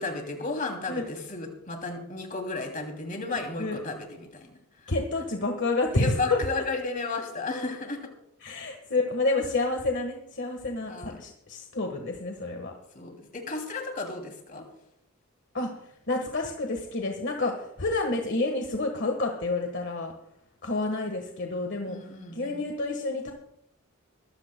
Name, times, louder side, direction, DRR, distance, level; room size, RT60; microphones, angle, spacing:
voice 1, 0.0-4.6 5.9-8.0 10.9-11.2 12.9-14.7 21.9-22.7, left 3 dB, 40° left, 3 dB, 2.8 m, -33 dB
voice 2, 3.3-3.8 4.9-6.6 8.4-12.7 15.5-15.7 16.1-20.1 20.6-22.0 22.3-23.3, left 2 dB, 55° left, 3 dB, 1.5 m, -29 dB
23.0 x 14.5 x 2.2 m, 0.77 s
head